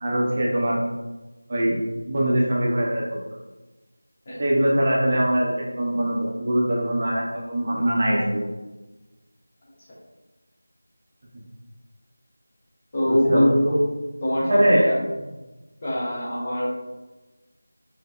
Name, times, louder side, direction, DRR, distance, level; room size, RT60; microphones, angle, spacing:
voice 1, 0.0-0.8 1.5-1.8 2.1-3.0 4.4-8.4 13.1-13.4 14.5-14.8, right 1 dB, 30° right, -4 dB, 0.6 m, -22 dB
voice 2, 12.9-13.8 14.2-15.0 15.8-16.7, equal, 25° left, -6 dB, 0.8 m, -23 dB
4.1 x 2.8 x 2.3 m, 1.1 s
figure-of-eight pair, 170°, 0 cm